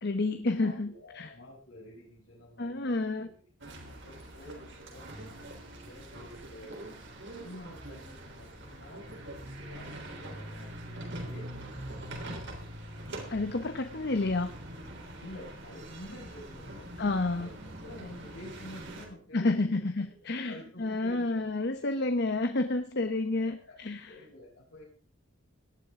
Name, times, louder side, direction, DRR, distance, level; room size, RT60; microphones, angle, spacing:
voice 1, 0.0-1.3 2.6-3.3 13.3-14.5 17.0-17.5 19.3-24.1, left 2 dB, 55° left, 8 dB, 1.0 m, -30 dB
voice 2, 0.6-3.3 3.8-4.6 4.9-5.4 5.8-6.9 7.4-9.1 9.4-12.5 15.1-16.9 17.3-17.5 17.8-20.1 20.4-21.4 21.7-21.8 23.3-24.8, left 1 dB, 80° left, -7 dB, 5.7 m, -49 dB
sound 1, 3.6-19.1, right 1 dB, 60° right, 3.6 m, -43 dB
18.0 x 12.0 x 3.7 m, 0.42 s
head